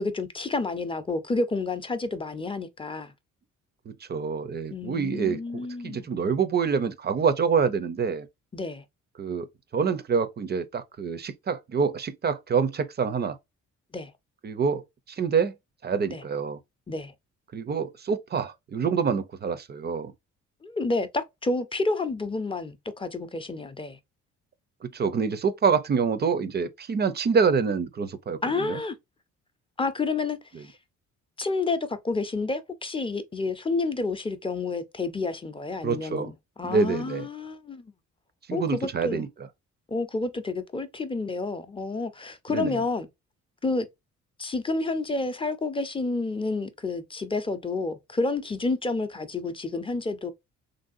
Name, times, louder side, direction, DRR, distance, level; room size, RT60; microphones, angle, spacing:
voice 1, 0.0-3.1 4.7-6.1 8.5-8.8 13.9-14.1 16.1-16.2 16.9-17.1 20.6-24.0 28.4-29.0 29.8-30.7 31.4-37.8 38.5-39.3 39.9-43.1 43.6-43.9 44.4-50.3, left 3 dB, 20° left, 0.5 m, -30 dB
voice 2, 3.9-8.3 9.2-9.5 9.7-13.4 14.4-15.5 15.8-16.6 17.5-20.1 24.9-28.8 35.8-36.3 36.6-37.3 38.5-39.5 42.5-42.8, right 5 dB, 35° right, 0.5 m, -26 dB
3.2 x 2.6 x 2.5 m
cardioid pair, 90°, 30 cm